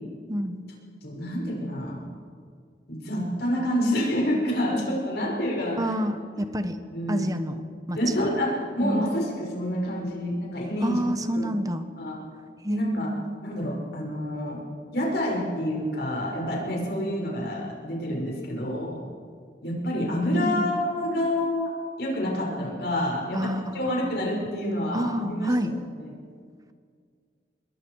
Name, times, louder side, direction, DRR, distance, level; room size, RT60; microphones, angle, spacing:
voice 1, 0.3-0.6 5.8-6.8 7.1-7.6 7.9-8.3 8.8-9.1 10.8-11.8 12.6-13.4 20.3-20.8 23.3-24.1 24.9-25.7, equal, 20° right, 9 dB, 1.2 m, -28 dB
voice 2, 1.0-2.1 2.9-5.8 6.4-6.5 6.9-7.3 7.9-11.0 11.4-11.5 12.0-12.2 12.7-13.1 13.4-14.6 14.9-19.0 19.6-21.7 22.0-25.7 26.0-26.1, equal, 65° left, -2 dB, 5.9 m, -28 dB
26.0 x 21.0 x 4.8 m, 2.1 s
head